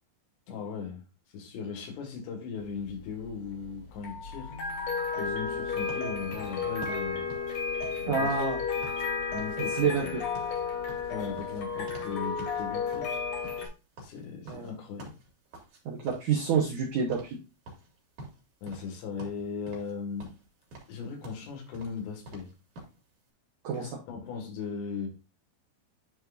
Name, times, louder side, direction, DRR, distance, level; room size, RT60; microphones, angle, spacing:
voice 1, 0.5-1.0 1.3-4.5 5.2-7.3 8.0-8.4 9.3-10.1 11.1-13.1 14.0-15.1 18.6-20.3 20.9-22.5 23.7-25.1, left 5 dB, 75° left, 2 dB, 4.0 m, -38 dB
sound 1, 2.6-13.7, left 5 dB, 60° left, 1.8 m, -33 dB
sound 2, 5.9-9.1 9.3-9.6 9.8-12.1 12.4-12.6 12.9-15.8 16.1-16.9 17.1-17.4 17.6-18.9 19.2-19.9 20.2-23.0, right 1 dB, 50° right, 3.2 m, -47 dB
voice 2, 8.1-8.6 9.6-10.2 14.5-14.7 15.9-17.4 23.6-23.9, right 6 dB, 80° right, -1 dB, 1.7 m, -28 dB
10.5 x 4.7 x 2.5 m, 0.29 s
omnidirectional pair, 5.1 m